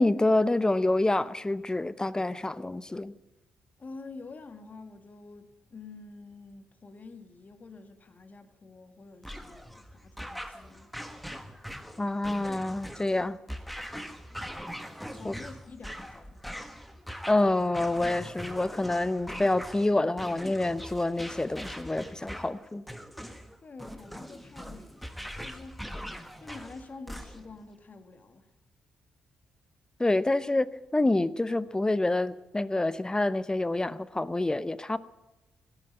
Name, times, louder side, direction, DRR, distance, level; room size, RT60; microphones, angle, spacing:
voice 1, 0.0-3.2 12.0-13.4 13.7-13.9 15.2-15.3 17.3-22.8 30.0-35.0, left 2 dB, 20° left, 0.7 m, -27 dB
voice 2, 3.8-10.9 15.1-16.7 23.6-25.9 26.4-28.5, left 3 dB, 40° left, 1.8 m, -48 dB
sound 1, 9.2-27.6, equal, ahead, 1.4 m, -42 dB
17.0 x 9.8 x 8.7 m
hypercardioid pair, 45°, 4 cm